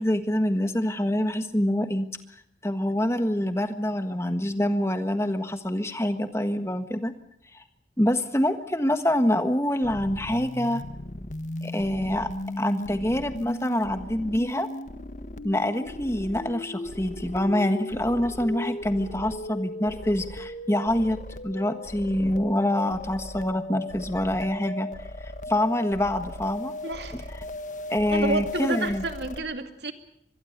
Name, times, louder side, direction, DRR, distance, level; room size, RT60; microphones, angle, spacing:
voice 1, 0.0-2.1 2.6-7.1 7.5-7.6 8.0-10.8 11.6-12.3 12.6-14.7 15.4-24.9 25.2-26.7 27.9-29.0, left 1 dB, 15° left, 8 dB, 1.5 m, -26 dB
sound 1, 9.8-29.4, left 1 dB, 45° left, 1.6 m, -37 dB
voice 2, 26.8-27.3 28.1-29.9, right 2 dB, 70° right, 7 dB, 2.5 m, -30 dB
25.5 x 22.0 x 6.8 m, 0.73 s
head